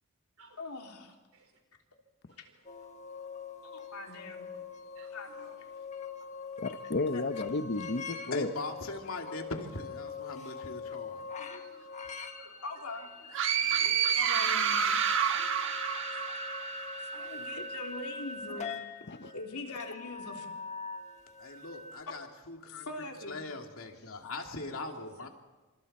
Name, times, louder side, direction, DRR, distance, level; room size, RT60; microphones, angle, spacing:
voice 1, 0.6-1.1 2.4-2.5 3.6-4.5 5.1-5.3 7.1-7.2 12.6-13.1 14.2-15.0 17.1-18.7 19.3-20.5 22.9-23.4, left 3 dB, 90° left, 3.4 m, -42 dB
voice 2, 2.3-2.8 4.1-4.2 5.0-5.9 10.0-10.1 11.4-11.9 12.3-13.4 13.8-14.2 14.6-16.4 17.1-17.3 19.2-19.3 24.9-25.1, right 2 dB, 75° right, 5.1 m, -57 dB
sound 1, 2.7-22.0, left 4 dB, 30° left, 1.5 m, -43 dB
voice 3, 6.6-8.5 19.1-19.3, left 2 dB, 50° left, 0.8 m, -33 dB
voice 4, 8.3-11.2 13.6-14.0 21.4-25.3, left 2 dB, 65° left, 2.8 m, -41 dB
sound 2, 13.3-17.0, right 8 dB, 60° right, 1.3 m, -29 dB
28.5 x 27.0 x 4.4 m
head